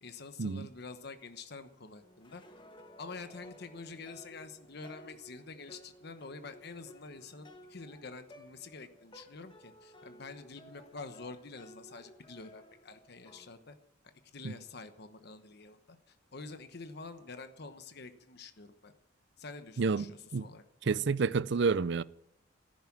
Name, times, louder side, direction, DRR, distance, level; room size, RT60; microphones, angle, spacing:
voice 1, 0.0-2.4 3.0-13.8 14.3-18.9 19.4-21.0, left 3 dB, 55° left, 1.1 m, -47 dB
sound 1, 2.0-13.5, left 1 dB, 25° left, 1.4 m, -56 dB
voice 2, 19.8-20.5 20.9-22.0, right 4 dB, 60° right, 0.5 m, -29 dB
14.5 x 10.5 x 7.4 m
head